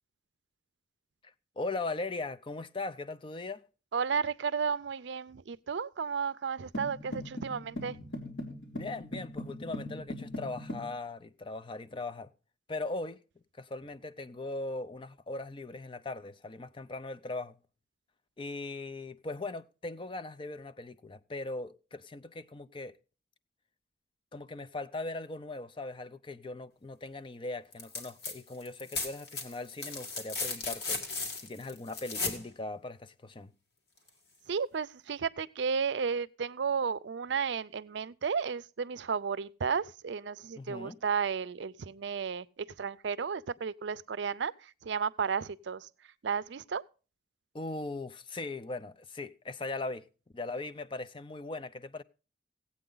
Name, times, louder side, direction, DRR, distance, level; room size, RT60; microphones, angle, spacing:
voice 1, 1.2-3.6 8.7-12.3 12.7-13.2 13.6-17.6 18.4-23.0 24.3-31.0 31.4-33.5 40.6-41.0 47.5-50.1 50.3-52.0, left 2 dB, 25° left, 0.5 m, -39 dB
voice 2, 3.9-8.0 34.5-45.9 46.2-46.8, right 6 dB, 70° right, 0.5 m, -33 dB
sound 1, 6.7-10.9, left 1 dB, 85° left, 2.9 m, -40 dB
sound 2, 27.7-28.3 28.6-32.4 34.1-34.2, left 3 dB, 55° left, 2.0 m, -36 dB
16.5 x 8.5 x 3.8 m
head